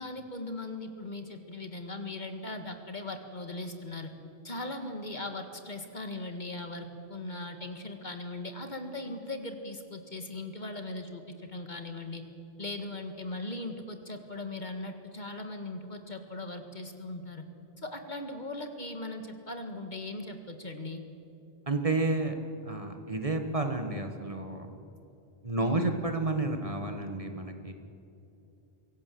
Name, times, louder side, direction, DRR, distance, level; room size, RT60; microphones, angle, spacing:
voice 1, 0.0-4.1 4.4-12.2 12.6-17.4 17.8-21.0 25.6-26.0, left 2 dB, 45° left, 6 dB, 2.0 m, -39 dB
voice 2, 21.7-22.4 22.7-24.7 25.4-27.7, right 2 dB, 35° right, 5 dB, 1.6 m, -30 dB
24.5 x 17.5 x 7.8 m, 2.8 s
omnidirectional pair, 1.1 m